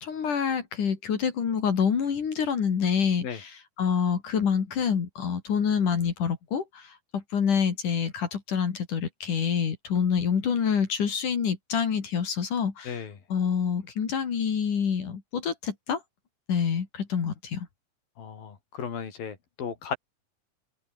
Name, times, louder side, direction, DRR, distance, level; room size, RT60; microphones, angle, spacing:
voice 1, 0.0-13.0 13.3-16.0 16.5-17.7, left 7 dB, 65° left, 4.4 m, -27 dB
voice 2, 12.9-13.2 18.2-20.0, left 7 dB, 80° left, 5.3 m, -35 dB
open air
omnidirectional pair, 4.0 m